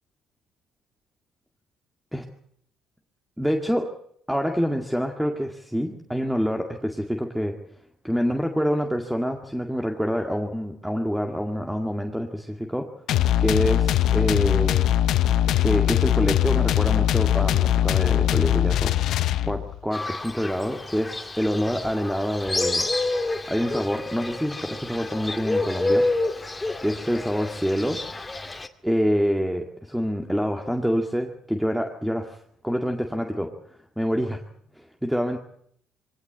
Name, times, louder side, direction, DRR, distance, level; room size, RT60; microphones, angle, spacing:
voice 1, 3.4-3.9 4.3-7.6 8.0-12.9 13.4-14.9 15.6-19.0 19.4-22.9 23.5-26.1 26.8-28.0 28.8-32.4 32.6-33.5 34.0-34.4 34.8-35.4, equal, 5° right, 3 dB, 2.1 m, -26 dB
sound 1, 13.1-19.8, left 11 dB, 70° left, 0.9 m, -21 dB
Fowl, 19.9-28.7, left 2 dB, 15° left, 2.3 m, -29 dB
23.5 x 18.5 x 8.1 m, 0.67 s
cardioid pair, 95°, 0 cm